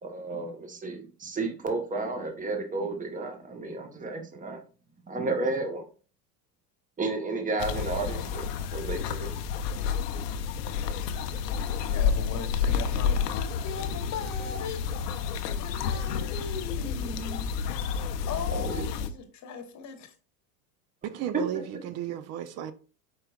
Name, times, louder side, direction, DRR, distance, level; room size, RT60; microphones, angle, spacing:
voice 1, 0.0-4.6 5.1-5.8 7.0-9.3 18.5-18.8 21.1-21.4, right 3 dB, 15° right, 1.0 m, -32 dB
sound 1, 7.6-19.1, left 6 dB, 80° left, 0.7 m, -30 dB
voice 2, 11.9-14.8 15.6-17.5 18.3-20.1, left 5 dB, 35° left, 1.1 m, -38 dB
voice 3, 21.0-22.7, right 10 dB, 35° right, 0.5 m, -34 dB
4.7 x 4.6 x 2.3 m
hypercardioid pair, 100°, 47 cm